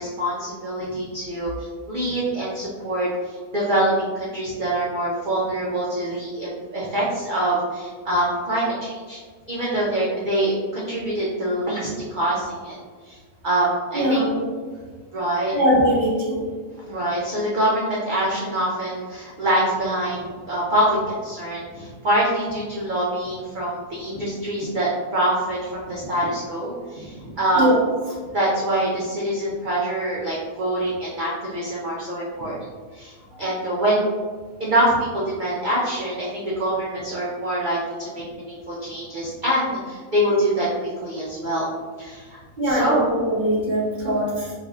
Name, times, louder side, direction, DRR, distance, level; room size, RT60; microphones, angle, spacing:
voice 1, 0.0-9.2 9.5-12.8 13.0-13.2 13.4-14.3 15.1-15.5 16.8-27.7 28.3-32.6 32.9-34.1 34.6-41.7 42.0-42.4 42.6-43.1, right 1 dB, 75° right, -6 dB, 0.4 m, -25 dB
voice 2, 13.9-14.5 15.5-16.5 27.5-27.8 42.6-44.5, equal, 40° right, -9 dB, 1.2 m, -21 dB
3.5 x 2.4 x 2.3 m, 1.5 s
omnidirectional pair, 1.5 m